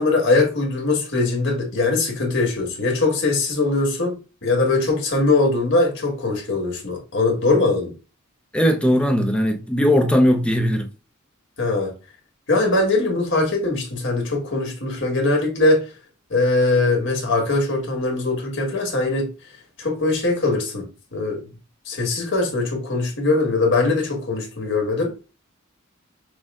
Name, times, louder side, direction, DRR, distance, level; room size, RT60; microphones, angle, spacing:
voice 1, 0.0-7.9 11.6-11.9 12.5-15.8 16.3-19.3 19.8-21.4 21.9-25.1, left 3 dB, 60° left, 1.6 m, -21 dB
voice 2, 8.5-10.9, equal, 5° left, 0.5 m, -18 dB
6.0 x 2.0 x 3.6 m
head